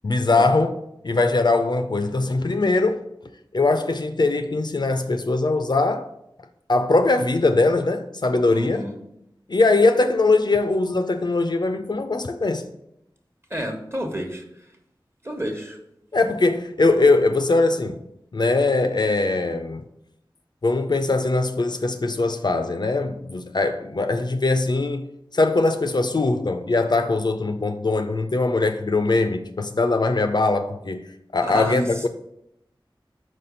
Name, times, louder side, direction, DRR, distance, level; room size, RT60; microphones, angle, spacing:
voice 1, 0.0-0.7 1.0-3.0 3.5-6.1 6.7-8.9 9.5-12.7 16.1-18.0 18.3-19.9 20.6-25.1 25.3-31.0 31.3-32.1, left 3 dB, 55° left, 0.4 m, -21 dB
voice 2, 8.5-8.9 13.5-14.4 15.2-15.8 31.4-32.1, equal, 30° right, 1.1 m, -30 dB
4.7 x 4.3 x 5.2 m
wide cardioid pair, 55°, 9 cm